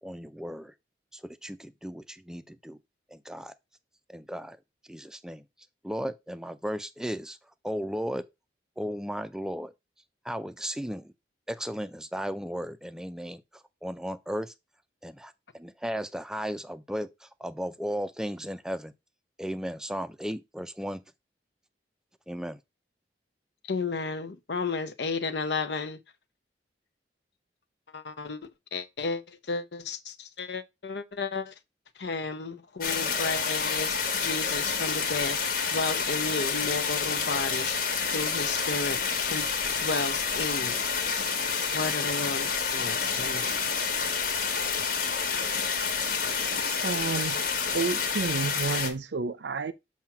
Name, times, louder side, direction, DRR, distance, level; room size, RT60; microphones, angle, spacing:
voice 1, 0.0-0.7 1.1-2.8 3.1-3.5 4.1-4.6 4.8-5.4 5.8-7.4 7.6-8.3 8.8-9.7 10.2-11.1 11.5-14.5 15.0-18.9 19.4-21.0 22.3-22.6, equal, 5° right, 0.4 m, -35 dB
voice 2, 23.6-26.0 27.9-31.5 32.0-37.8 38.1-39.0 39.3-40.8 41.7-43.6 44.0-44.1, left 4 dB, 75° left, 0.8 m, -33 dB
sound 1, 32.8-48.9, left 5 dB, 55° left, 1.4 m, -29 dB
voice 3, 46.6-47.4 47.7-49.7, right 4 dB, 80° right, 0.6 m, -30 dB
7.2 x 2.9 x 5.9 m
head